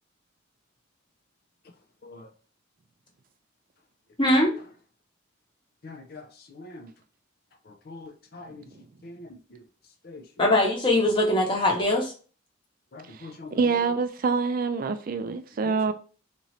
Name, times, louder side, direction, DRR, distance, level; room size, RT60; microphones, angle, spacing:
voice 1, 4.2-4.5 10.4-12.1, left 1 dB, 25° left, 1.0 m, -21 dB
voice 2, 5.8-6.9 7.7-8.6 9.0-9.6 10.0-10.2 12.9-13.6 15.6-15.8, left 2 dB, 50° left, 0.4 m, -44 dB
voice 3, 13.1-15.9, right 4 dB, 45° right, 0.3 m, -26 dB
3.0 x 2.7 x 4.2 m
head